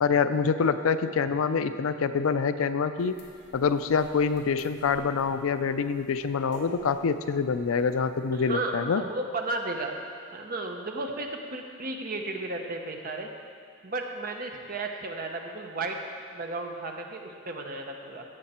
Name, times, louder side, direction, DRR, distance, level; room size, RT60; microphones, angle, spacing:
voice 1, 0.0-3.1 3.5-9.0, left 5 dB, 75° left, 11 dB, 0.4 m, -26 dB
sound 1, 3.0-8.6, left 1 dB, 55° left, 1.8 m, -50 dB
voice 2, 8.3-9.9 10.3-13.3 13.8-16.0 16.3-18.2, right 2 dB, 45° right, 2 dB, 1.0 m, -34 dB
16.5 x 6.7 x 4.3 m, 2.2 s
head